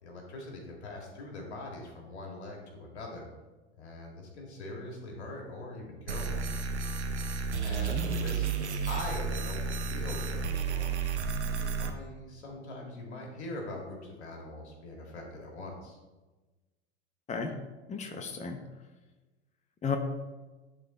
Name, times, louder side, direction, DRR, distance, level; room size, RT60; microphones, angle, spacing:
voice 1, 0.0-3.3 3.8-6.5 7.6-11.2 11.4-16.0, left 2 dB, 75° left, 0 dB, 2.2 m, -42 dB
sound 1, 6.1-11.9, right 5 dB, 90° right, 0.8 m, -32 dB
voice 2, 17.9-18.6 19.8-20.0, left 5 dB, 20° left, 5 dB, 0.9 m, -33 dB
11.0 x 4.1 x 4.1 m, 1.2 s
hypercardioid pair, 85°, 33 cm